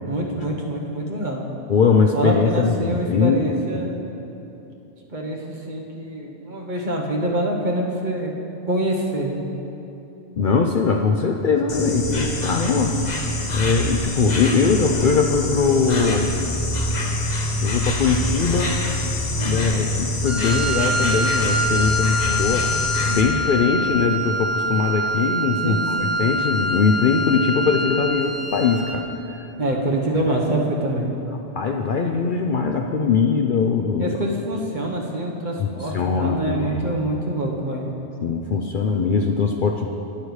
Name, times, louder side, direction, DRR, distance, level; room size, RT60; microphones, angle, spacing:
voice 1, 0.0-1.4 2.1-3.9 5.1-8.3 8.7-9.4 19.4-19.7 25.6-26.1 29.6-31.1 34.0-37.9, right 1 dB, 45° right, -1 dB, 1.2 m, -25 dB
voice 2, 1.7-3.7 10.4-13.0 13.5-16.4 17.6-18.8 19.4-22.7 23.1-29.5 31.5-34.2 35.6-36.8 38.2-39.9, left 5 dB, 55° left, 3 dB, 0.6 m, -21 dB
Insect, 11.7-23.2, left 1 dB, 40° left, 1.0 m, -25 dB
Wind instrument woodwind instrument, 20.2-29.1, equal, 25° right, 0.4 m, -25 dB
19.0 x 6.7 x 3.2 m, 3.0 s
omnidirectional pair, 1.2 m